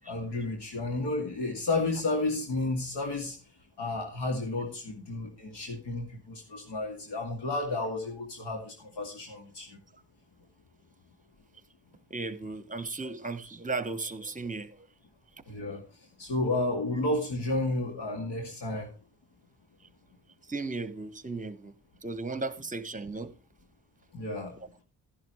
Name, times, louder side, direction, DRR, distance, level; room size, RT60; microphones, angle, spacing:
voice 1, 0.0-3.4 3.8-9.8 15.5-15.8 16.2-18.9 24.1-24.5, left 2 dB, 70° left, 2.4 m, -32 dB
voice 2, 12.1-14.8 20.5-21.7 22.0-23.3, right 3 dB, 20° right, 1.1 m, -35 dB
11.5 x 10.5 x 3.1 m
cardioid pair, 65°, 42 cm